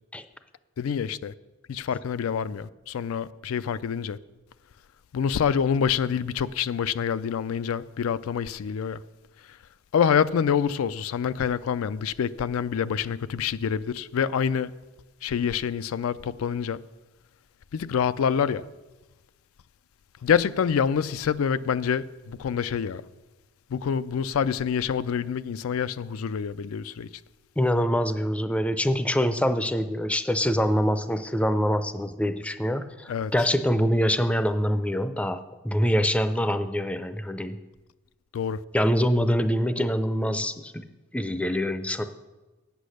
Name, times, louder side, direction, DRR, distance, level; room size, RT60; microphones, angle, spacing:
voice 1, 0.8-1.3 1.7-4.2 5.1-9.0 9.9-14.7 15.2-16.8 17.7-18.6 20.2-23.0 23.7-27.1 33.1-33.3 38.3-38.6, left 7 dB, 85° left, 0.4 m, -26 dB
voice 2, 27.6-37.6 38.7-40.8 41.1-42.0, equal, 5° left, 0.4 m, -25 dB
8.3 x 8.3 x 6.5 m
head